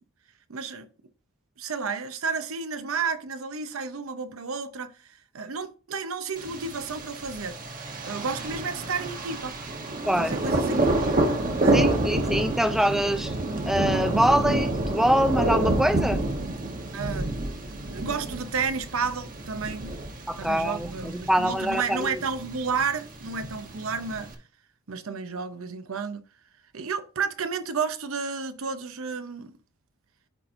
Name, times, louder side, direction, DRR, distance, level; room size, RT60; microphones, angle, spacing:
voice 1, 0.5-0.9 1.6-4.9 5.3-7.6 8.0-9.6 10.2-11.1 11.6-11.8 16.9-17.3 17.9-20.0 20.4-24.3 24.9-26.2 26.7-29.5, right 5 dB, 75° right, 0.8 m, -31 dB
Thunder, 6.4-24.3, right 2 dB, 40° right, 1.1 m, -28 dB
voice 2, 10.1-10.4 11.7-13.3 13.6-16.2 20.3-22.2, equal, ahead, 0.3 m, -24 dB
13.0 x 4.3 x 2.6 m
head